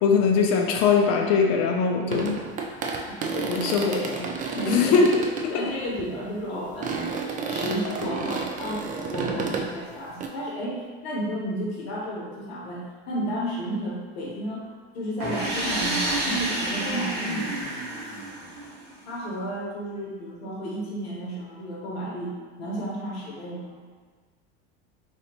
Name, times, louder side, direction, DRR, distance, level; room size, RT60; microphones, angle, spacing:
voice 1, 0.0-2.4 3.5-3.9 4.7-5.1, left 5 dB, 50° left, 2 dB, 0.5 m, -21 dB
sound 1, 2.1-5.5 6.0-6.2 6.8-9.7 10.2-10.3, right 5 dB, 25° right, 0.4 m, -31 dB
voice 2, 3.1-4.2 4.5-6.9 7.5-14.7 14.9-17.6 19.1-22.3 22.6-23.8, equal, 80° left, -4 dB, 0.9 m, -32 dB
sound 2, 15.2-18.9, right 1 dB, 80° right, 1.4 m, -29 dB
3.2 x 2.7 x 2.7 m, 1.5 s
hypercardioid pair, 85°, 31 cm